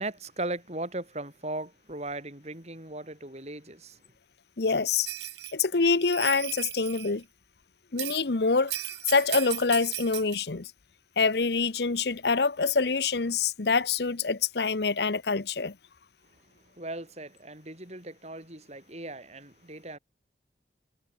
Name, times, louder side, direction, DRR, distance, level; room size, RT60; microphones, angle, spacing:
voice 1, 0.0-4.0 16.7-20.0, right 2 dB, 35° right, 7.7 m, -38 dB
voice 2, 4.6-5.1 5.5-7.2 7.9-8.7 9.0-10.7 11.2-15.7, left 4 dB, 65° left, 0.9 m, -26 dB
Bell, 5.1-5.5 6.0-7.1 8.0-8.2 8.7-10.4, right 14 dB, 70° right, 6.7 m, -36 dB
head